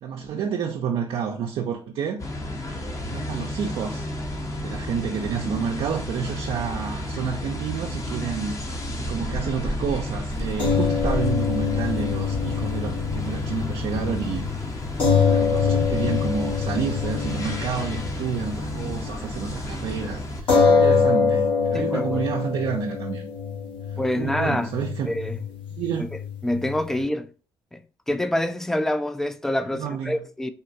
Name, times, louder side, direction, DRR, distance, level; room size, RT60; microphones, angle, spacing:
voice 1, 0.0-2.2 3.1-4.1 4.6-8.6 9.0-14.5 15.3-23.3 23.9-25.1 25.8-26.1 29.7-30.2, right 6 dB, 80° right, 0.5 m, -29 dB
sound 1, 2.2-20.4, left 1 dB, 35° left, 0.7 m, -31 dB
sound 2, 10.6-19.1 19.4-19.6 20.5-27.0, left 5 dB, 65° left, 1.4 m, -25 dB
voice 2, 21.7-22.2 24.0-24.7 25.0-25.4 26.0-26.1 26.4-27.3 27.7-30.5, left 1 dB, 5° left, 0.3 m, -26 dB
3.6 x 2.2 x 2.5 m
cardioid pair, 85°, 9 cm